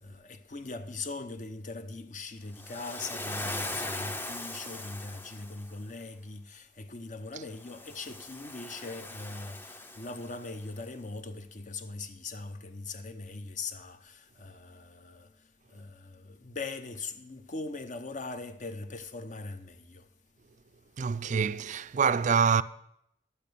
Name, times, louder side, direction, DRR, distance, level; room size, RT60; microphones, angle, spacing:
voice 1, 0.0-20.1, left 3 dB, 45° left, 0.8 m, -41 dB
Waves surf, 2.5-5.7 7.5-10.6, left 1 dB, 10° left, 0.6 m, -40 dB
voice 2, 21.0-22.6, right 6 dB, 40° right, 0.4 m, -25 dB
11.0 x 8.4 x 6.9 m
head